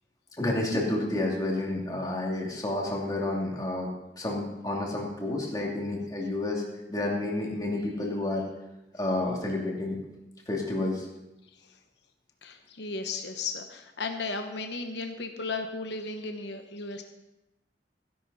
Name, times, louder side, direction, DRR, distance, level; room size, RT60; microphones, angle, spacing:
voice 1, 0.4-3.9 4.2-6.6 6.9-8.4 8.9-10.0 10.5-11.0, left 2 dB, 20° left, -2 dB, 2.5 m, -30 dB
voice 2, 12.4-17.0, left 3 dB, 75° left, 5 dB, 1.1 m, -35 dB
16.5 x 11.0 x 4.1 m, 0.97 s
head